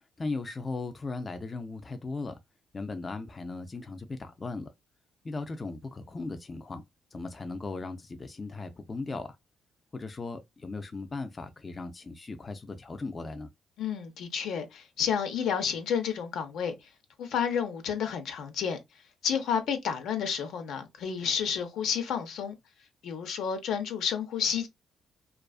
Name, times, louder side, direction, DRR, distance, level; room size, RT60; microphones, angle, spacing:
voice 1, 0.2-2.4 2.7-4.7 5.2-6.8 7.1-9.4 9.9-13.5, left 3 dB, 30° left, 0.3 m, -37 dB
voice 2, 13.8-16.7 17.2-18.8 19.2-22.5 23.0-24.7, left 7 dB, 75° left, 0.6 m, -30 dB
2.4 x 2.3 x 2.3 m
cardioid pair, 90°, 0 cm